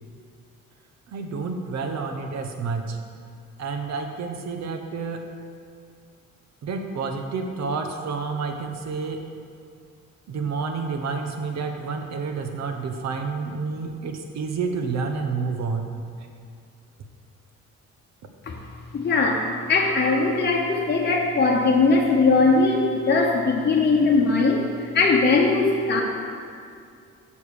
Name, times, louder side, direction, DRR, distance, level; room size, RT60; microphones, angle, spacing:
voice 1, 1.1-3.0 3.6-5.3 6.6-9.2 10.3-16.0, right 4 dB, 60° right, 5 dB, 1.0 m, -29 dB
voice 2, 18.9-26.0, left 3 dB, 35° left, -2 dB, 1.0 m, -20 dB
7.2 x 5.3 x 6.4 m, 2.3 s
cardioid pair, 90°, 30 cm